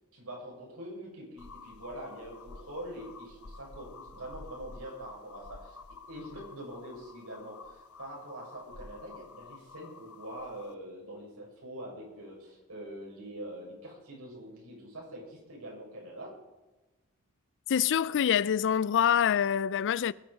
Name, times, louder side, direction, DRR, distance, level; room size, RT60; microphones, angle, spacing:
voice 1, 0.1-5.8 6.1-16.4, right 1 dB, 75° right, 7.1 m, -44 dB
sound 1, 1.4-10.7, left 4 dB, 80° left, 1.0 m, -50 dB
voice 2, 17.7-20.1, left 9 dB, 55° left, 0.4 m, -25 dB
21.5 x 10.5 x 5.2 m
head